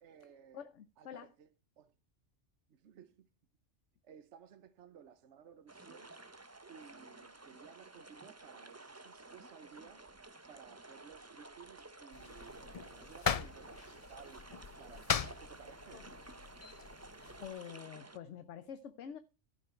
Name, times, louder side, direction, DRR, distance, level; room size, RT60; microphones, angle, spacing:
voice 1, 0.0-0.6 1.0-1.5 1.8-1.9 2.7-3.2 4.0-6.1 6.7-10.1 10.5-16.1, right 7 dB, 75° right, 1.2 m, -57 dB
voice 2, 0.5-1.3 16.8-17.0 17.4-19.2, left 8 dB, 80° left, 1.1 m, -47 dB
sound 1, 5.7-18.2, right 2 dB, 15° right, 0.6 m, -53 dB
sound 2, 12.1-17.5, left 7 dB, 45° left, 0.5 m, -40 dB
14.5 x 6.4 x 4.4 m
omnidirectional pair, 1.2 m